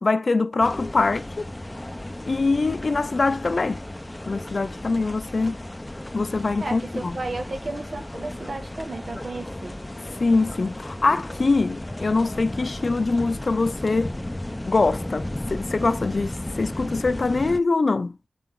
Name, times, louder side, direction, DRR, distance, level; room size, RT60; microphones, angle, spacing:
voice 1, 0.0-1.5 2.2-3.8 4.3-5.6 6.1-7.2 10.2-14.1 14.6-18.2, left 3 dB, 70° left, 0.6 m, -23 dB
sound 1, 0.6-17.6, left 1 dB, 20° left, 0.6 m, -34 dB
voice 2, 6.6-9.8, right 2 dB, 70° right, 1.8 m, -33 dB
12.5 x 4.2 x 3.8 m
wide cardioid pair, 75°, 0 cm